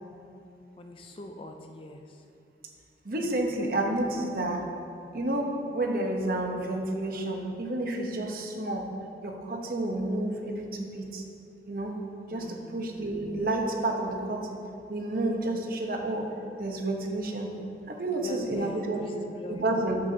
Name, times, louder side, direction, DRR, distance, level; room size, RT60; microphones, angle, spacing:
voice 1, 0.8-2.2 12.3-12.7 17.9-19.6, left 1 dB, 30° left, 4 dB, 0.4 m, -42 dB
voice 2, 3.0-4.7 5.1-8.9 9.2-11.2 11.7-11.9 12.3-14.6 14.9-16.3 16.6-17.5 17.9-19.0 19.5-20.0, right 1 dB, 50° right, 1 dB, 1.0 m, -30 dB
11.0 x 7.1 x 2.8 m, 2.6 s
head